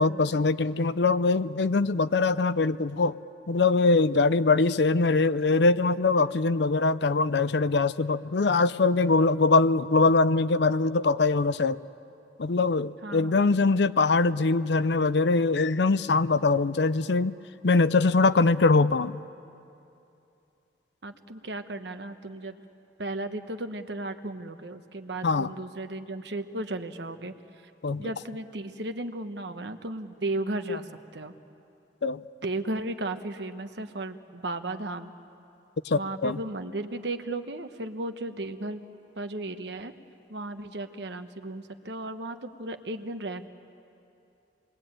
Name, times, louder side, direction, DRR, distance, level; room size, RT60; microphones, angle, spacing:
voice 1, 0.0-3.2 3.5-11.8 12.4-17.4 17.6-19.2 25.2-25.5 27.8-28.1 30.7-30.8 32.0-32.2 35.9-36.4, left 3 dB, 70° left, 15 dB, 0.6 m, -23 dB
voice 2, 13.0-13.4 21.0-22.6 23.0-27.3 28.0-31.3 32.4-35.1 35.9-38.8 39.2-39.9 40.3-43.5, right 2 dB, 70° right, 8 dB, 1.1 m, -35 dB
28.5 x 21.5 x 8.8 m, 2.7 s
head